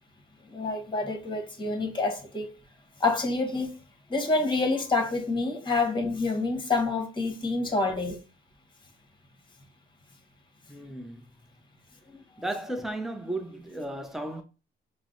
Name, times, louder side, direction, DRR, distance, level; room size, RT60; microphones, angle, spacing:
voice 1, 0.5-2.5 3.0-3.7 4.1-8.2 12.1-12.2, left 3 dB, 25° left, 1.2 m, -27 dB
voice 2, 10.7-11.3 12.4-14.4, right 1 dB, ahead, 0.7 m, -34 dB
4.5 x 2.1 x 3.8 m
cardioid pair, 90°, 20 cm